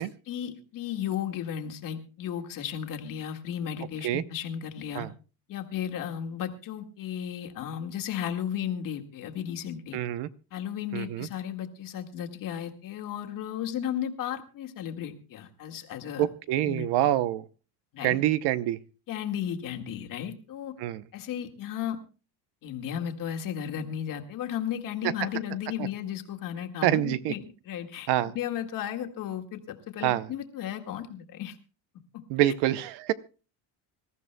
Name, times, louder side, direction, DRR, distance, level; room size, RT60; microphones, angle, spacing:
voice 1, 0.0-5.1 5.5-10.0 10.5-16.3 16.7-17.1 17.9-18.2 19.1-20.7 21.1-22.0 22.6-28.1 28.3-31.6 32.1-32.5, left 9 dB, 45° left, 4 dB, 1.9 m, -34 dB
voice 2, 9.9-10.3 10.9-11.3 16.2-17.4 18.0-18.8 20.8-21.0 25.8-25.9 26.8-27.3 28.1-28.4 30.0-30.3 32.3-33.1, right 13 dB, 65° right, 15 dB, 0.8 m, -26 dB
25.5 x 13.5 x 2.2 m, 0.34 s
cardioid pair, 145°, 44 cm